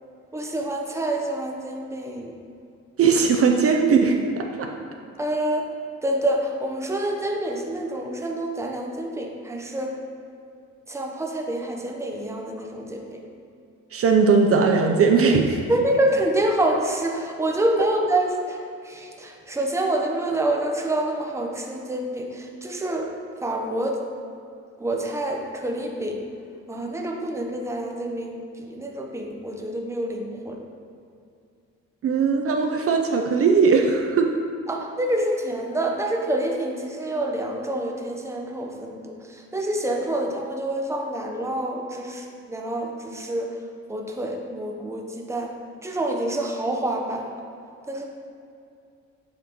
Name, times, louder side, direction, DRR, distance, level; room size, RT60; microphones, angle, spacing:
voice 1, 0.3-2.4 5.2-5.7 6.0-10.0 10.9-13.2 15.7-23.1 23.4-24.0 24.8-26.2 26.7-30.6 34.7-43.5 43.9-45.5 45.8-47.3 47.9-48.0, right 1 dB, 10° right, 1 dB, 0.8 m, -27 dB
voice 2, 3.0-4.7 13.9-15.6 32.0-34.3, right 5 dB, 50° right, 3 dB, 0.5 m, -19 dB
7.9 x 5.0 x 3.0 m, 2.5 s
cardioid pair, 90°, 30 cm